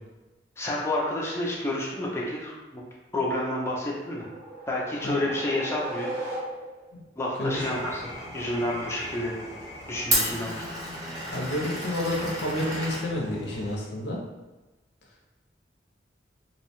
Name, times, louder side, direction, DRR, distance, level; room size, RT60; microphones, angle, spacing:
voice 1, 0.6-2.8 3.1-4.3 4.7-6.1 7.2-9.3 9.9-10.7, left 1 dB, 15° left, -4 dB, 0.4 m, -29 dB
sound 1, 3.8-7.0, right 1 dB, 55° right, 0.7 m, -37 dB
Glass, 7.5-13.7, equal, 20° right, 0.6 m, -33 dB
voice 2, 11.3-14.2, left 1 dB, 75° left, -1 dB, 0.6 m, -30 dB
2.6 x 2.1 x 2.9 m, 1.1 s
head